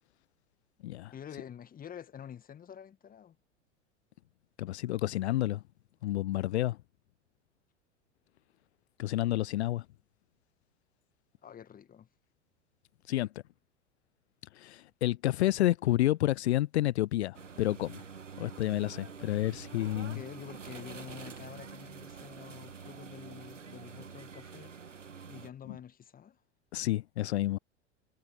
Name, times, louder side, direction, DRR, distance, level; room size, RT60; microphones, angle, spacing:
voice 1, 1.1-3.4 11.4-12.1 20.1-24.7 25.2-26.4, left 9 dB, 25° left, 1.7 m, -48 dB
voice 2, 4.6-5.6 6.0-6.8 9.0-9.9 13.1-13.3 14.5-18.0 18.4-20.2 25.7-25.8 26.7-27.6, left 15 dB, 65° left, 0.6 m, -30 dB
sound 1, 17.3-25.5, right 6 dB, 80° right, 1.7 m, -47 dB
figure-of-eight pair, 85°, 36 cm